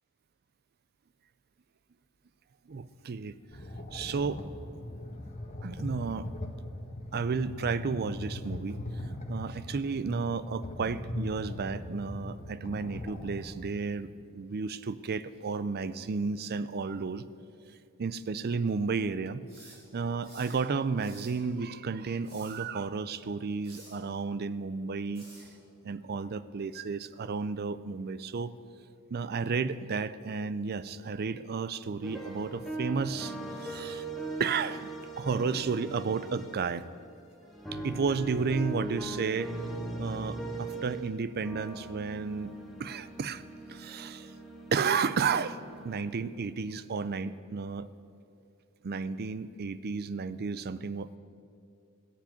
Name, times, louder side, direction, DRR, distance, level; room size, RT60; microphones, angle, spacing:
voice 1, 2.7-3.4 3.9-4.4 5.6-6.3 7.1-8.8 9.3-17.2 18.0-25.3 25.8-28.5 29.1-34.1 34.4-34.9 35.2-36.9 37.7-39.5 40.0-42.5 42.8-43.4 43.7-44.3 44.7-45.6 45.8-47.9 48.8-51.2, right 5 dB, 45° right, 16 dB, 0.5 m, -32 dB
sound 1, 3.5-13.5, left 1 dB, 35° left, 1.3 m, -40 dB
sound 2, 19.5-20.6 21.0-21.4 22.1-22.6 23.6-24.0 25.1-25.5, right 1 dB, 25° right, 3.9 m, -52 dB
sound 3, 32.0-36.9 37.4-41.1 41.4-46.2, right 2 dB, ahead, 1.8 m, -40 dB
15.5 x 7.2 x 9.2 m, 2.5 s
head